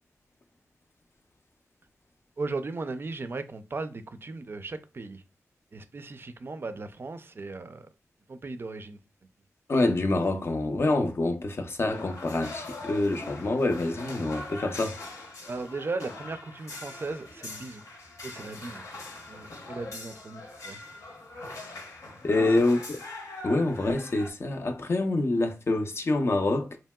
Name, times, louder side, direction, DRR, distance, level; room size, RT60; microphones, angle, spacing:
voice 1, 2.4-5.2 5.7-7.9 8.3-9.0 15.5-17.8 18.2-18.8 19.3-20.8 22.4-22.5, right 3 dB, 40° right, 0.4 m, -37 dB
voice 2, 9.7-15.0 22.2-23.0 23.4-26.8, left 2 dB, 50° left, 0.5 m, -26 dB
sound 1, 11.9-24.3, left 2 dB, 75° left, 0.8 m, -42 dB
2.9 x 2.7 x 2.2 m
cardioid pair, 60°, 6 cm